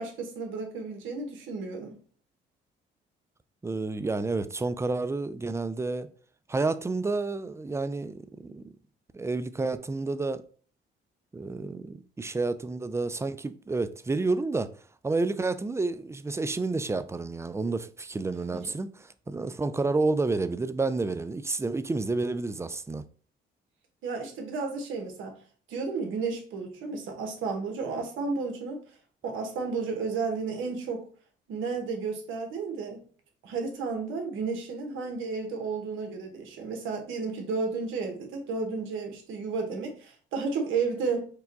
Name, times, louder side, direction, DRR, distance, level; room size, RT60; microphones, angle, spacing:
voice 1, 0.0-1.9 18.5-18.6 24.0-25.4 25.7-28.8 29.2-31.0 31.5-33.0 33.4-41.3, right 4 dB, 85° right, 1.1 m, -32 dB
voice 2, 3.6-6.1 6.5-8.7 9.1-10.4 11.3-14.7 15.0-23.0, right 3 dB, 15° right, 0.3 m, -30 dB
4.7 x 2.2 x 3.8 m
cardioid pair, 90°, 20 cm